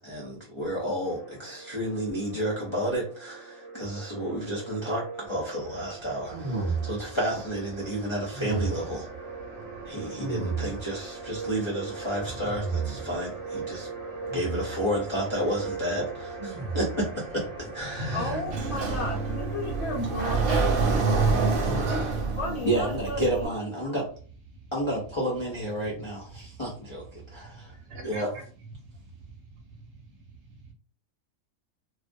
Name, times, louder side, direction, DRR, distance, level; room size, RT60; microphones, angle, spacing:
voice 1, 0.0-9.1 9.8-13.9 14.3-18.4 22.6-24.1 24.7-27.8 28.0-28.3, right 1 dB, 50° left, -4 dB, 0.3 m, -31 dB
sound 1, 1.0-21.0, right 4 dB, 15° right, 1.0 m, -41 dB
sound 2, 6.3-7.2 8.3-9.0 10.2-11.0 12.2-13.2 14.3-14.8 16.4-17.1, right 4 dB, 45° right, 0.4 m, -32 dB
voice 2, 9.5-10.0 16.6-16.7 17.9-18.6 19.9-20.7 24.5-24.7 25.8-26.0 26.3-26.5 27.1-28.4 28.8-29.1 29.5-30.7, right 1 dB, 60° right, 1 dB, 0.9 m, -41 dB
voice 3, 18.1-20.7 21.1-21.2 21.9-22.0 22.4-23.4, left 2 dB, 65° left, 2 dB, 0.7 m, -33 dB
Sliding door, 18.5-23.5, right 4 dB, 85° right, 1.1 m, -26 dB
2.3 x 2.0 x 2.5 m, 0.42 s
omnidirectional pair, 1.4 m